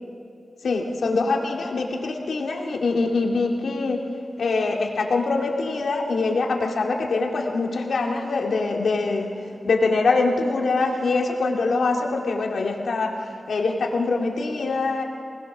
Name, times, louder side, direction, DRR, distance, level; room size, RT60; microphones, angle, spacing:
voice 1, 0.6-4.0 4.4-9.4 9.6-15.0, left 3 dB, 80° left, 0 dB, 2.4 m, -24 dB
25.5 x 19.5 x 6.2 m, 2.5 s
wide cardioid pair, 155°, 0 cm